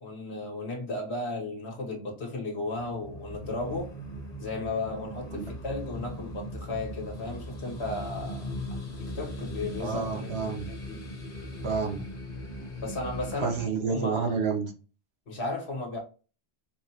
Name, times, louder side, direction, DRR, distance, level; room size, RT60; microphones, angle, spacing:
voice 1, 0.0-3.9 4.4-8.5 9.1-10.3 10.7-11.0 12.8-14.4 15.3-16.0, left 2 dB, 75° left, 1.5 m, -35 dB
sound 1, 2.7-13.7, equal, 45° left, 0.9 m, -39 dB
voice 2, 9.8-10.7 11.6-12.1 13.4-14.7, right 5 dB, 70° right, 1.1 m, -29 dB
4.6 x 2.2 x 2.8 m
omnidirectional pair, 1.1 m